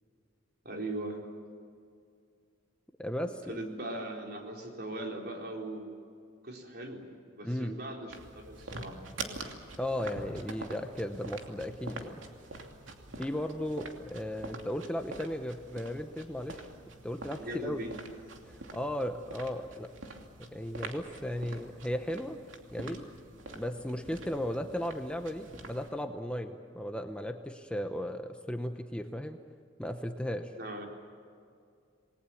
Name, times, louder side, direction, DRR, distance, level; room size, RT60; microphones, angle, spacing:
voice 1, 0.6-1.2 3.5-6.0 6.4-7.1 7.3-9.0 17.4-18.0 30.6-30.9, right 1 dB, 55° right, 1 dB, 4.2 m, -39 dB
voice 2, 3.0-3.4 7.4-7.8 9.8-12.2 13.2-16.7 17.0-17.8 18.5-19.9 20.4-22.4 22.7-23.0 23.5-29.4 29.8-30.5, equal, 5° left, 6 dB, 0.9 m, -36 dB
sound 1, 8.1-25.9, right 2 dB, 85° right, 2.7 m, -46 dB
28.5 x 20.5 x 7.2 m, 2.3 s
head